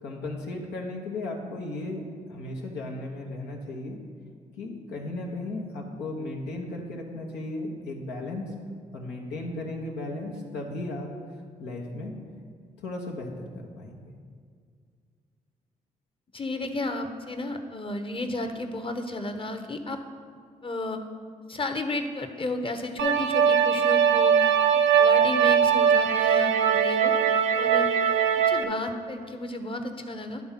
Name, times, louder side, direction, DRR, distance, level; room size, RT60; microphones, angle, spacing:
voice 1, 0.0-4.0 4.6-8.5 8.9-11.1 11.6-12.1 12.8-14.1, left 2 dB, 80° left, 0 dB, 1.2 m, -35 dB
voice 2, 16.3-20.0 20.6-21.0 21.5-24.5 24.7-27.1 27.6-27.9 28.5-30.4, left 2 dB, 30° left, 6 dB, 1.0 m, -32 dB
sound 1, 23.0-28.6, right 7 dB, 85° right, 0.5 m, -21 dB
10.5 x 3.6 x 5.8 m, 2.1 s
hypercardioid pair, 45°, 17 cm